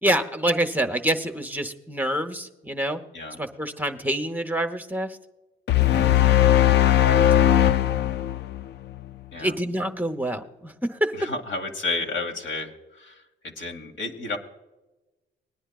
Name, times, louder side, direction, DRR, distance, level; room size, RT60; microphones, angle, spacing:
voice 1, 0.0-3.0 3.4-5.2 9.4-11.1, right 1 dB, 10° right, 5 dB, 0.8 m, -26 dB
sound 1, 5.7-9.0, left 12 dB, 60° left, 0.4 m, -19 dB
voice 2, 6.0-6.4 9.3-9.6 11.1-14.4, left 3 dB, 75° left, 2 dB, 1.9 m, -32 dB
21.0 x 10.0 x 2.4 m, 1.1 s
cardioid pair, 90°, 20 cm